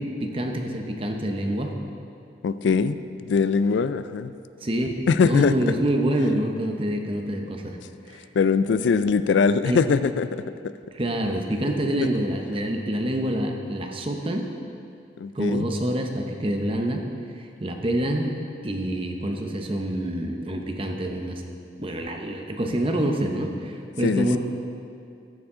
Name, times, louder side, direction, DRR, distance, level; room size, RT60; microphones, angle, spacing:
voice 1, 0.0-1.8 4.6-7.8 8.1-8.3 9.6-9.8 10.9-14.5 15.3-17.1 17.4-18.3 18.6-21.4 21.8-24.4, right 1 dB, 30° right, 3 dB, 0.8 m, -26 dB
voice 2, 2.4-3.0 3.2-4.3 5.1-5.5 8.3-10.7 15.2-15.7 24.0-24.4, left 5 dB, 90° left, 13 dB, 0.3 m, -22 dB
13.5 x 7.2 x 3.7 m, 2.5 s
head